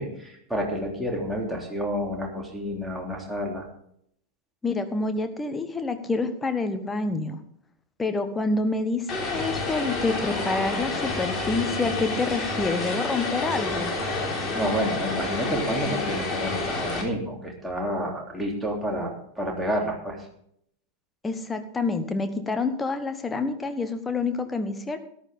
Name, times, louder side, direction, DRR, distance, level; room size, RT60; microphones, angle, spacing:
voice 1, 0.0-3.7 14.2-20.3, equal, 5° right, -2 dB, 3.3 m, -29 dB
voice 2, 4.6-7.4 8.0-13.9 21.2-25.0, left 3 dB, 15° left, 8 dB, 1.4 m, -27 dB
Vehicle, 9.1-17.0, left 3 dB, 30° left, 3.4 m, -29 dB
13.5 x 12.0 x 3.7 m, 0.69 s
figure-of-eight pair, 90°, 0 cm